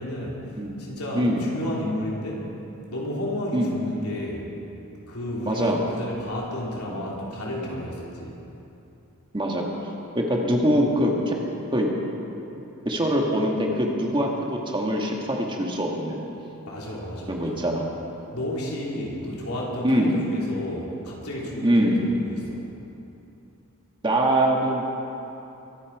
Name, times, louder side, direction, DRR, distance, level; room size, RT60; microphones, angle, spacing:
voice 1, 0.0-2.5 2.9-4.5 5.1-8.4 16.7-17.7 18.3-22.7, left 1 dB, 85° left, -4 dB, 3.4 m, -32 dB
voice 2, 5.5-5.8 6.9-7.0 9.3-9.6 10.1-11.4 11.7-11.9 12.5-16.3 17.3-17.9 19.8-20.2 21.6-22.0 24.0-24.9, equal, 20° right, -1 dB, 1.6 m, -23 dB
23.0 x 10.0 x 4.8 m, 2.9 s
head